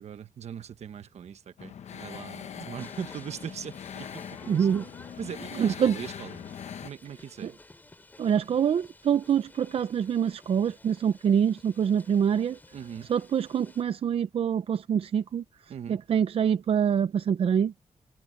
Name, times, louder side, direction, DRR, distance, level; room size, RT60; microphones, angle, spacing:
voice 1, 0.0-4.9 5.2-6.5 6.8-7.5 12.7-13.1 15.7-16.0, right 8 dB, 75° right, 1.2 m, -40 dB
sound 1, 1.6-6.9, left 8 dB, 80° left, 1.0 m, -42 dB
sound 2, 2.8-13.8, left 2 dB, 15° left, 2.9 m, -53 dB
voice 2, 4.5-4.8 5.6-5.9 7.4-7.5 8.2-12.6 13.1-15.4 15.9-17.7, right 8 dB, 60° right, 0.5 m, -25 dB
wide cardioid pair, 170°, 11 cm